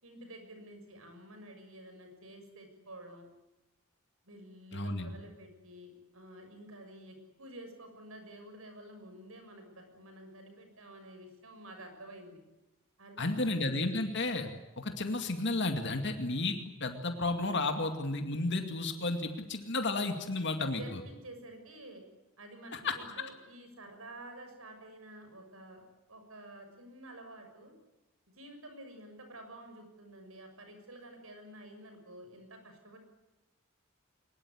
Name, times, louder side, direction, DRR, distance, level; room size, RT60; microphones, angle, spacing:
voice 1, 0.0-3.3 4.2-12.4 13.0-13.5 20.6-22.0 22.4-25.8 26.1-27.7 28.3-33.0, right 1 dB, 85° right, 5 dB, 6.6 m, -50 dB
voice 2, 4.7-5.1 13.2-14.5 14.8-21.0 22.7-23.0, left 2 dB, 55° left, 5 dB, 2.3 m, -32 dB
23.0 x 21.0 x 9.8 m, 1.0 s
head